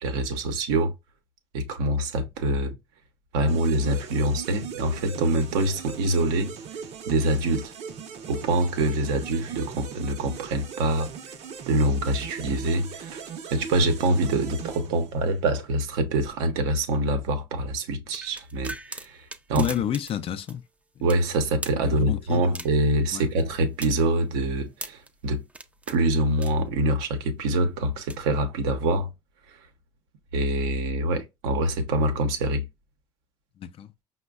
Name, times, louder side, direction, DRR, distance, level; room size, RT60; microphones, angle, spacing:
voice 1, 0.0-0.9 1.5-2.8 3.3-6.5 7.1-7.7 8.3-11.1 11.7-13.2 13.5-19.7 21.0-25.4 25.9-29.1 29.5-29.6 30.3-32.6, right 2 dB, 85° right, 0.8 m, -25 dB
sound 1, 3.5-15.5, right 7 dB, 55° right, 0.7 m, -39 dB
sound 2, 18.1-20.2 20.5-20.6 21.1-21.8 22.5-22.9 23.4-25.1 25.5-26.0 26.4-26.9 27.9-28.2, right 2 dB, 10° right, 0.4 m, -40 dB
voice 2, 19.6-20.6 21.0-21.1 21.8-22.6 23.1-23.3 33.6-33.9, left 10 dB, 45° left, 0.5 m, -30 dB
5.1 x 2.1 x 2.3 m
supercardioid pair, 85°, 13 cm